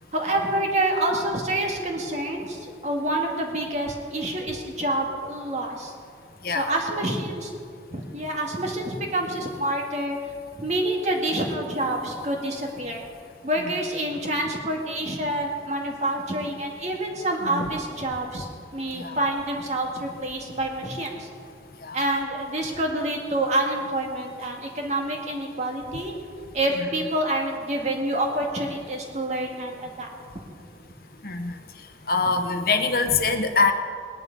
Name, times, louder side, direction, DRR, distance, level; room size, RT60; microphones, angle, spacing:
voice 1, 0.1-5.9 6.5-7.5 7.9-10.2 10.6-13.0 13.4-18.5 18.7-21.3 21.9-26.1 26.5-30.1 30.4-30.5, right 1 dB, 40° right, 1 dB, 2.0 m, -27 dB
voice 2, 31.2-31.5 32.1-33.7, left 4 dB, 50° left, 6 dB, 1.0 m, -24 dB
19.5 x 11.0 x 5.3 m, 2.2 s
head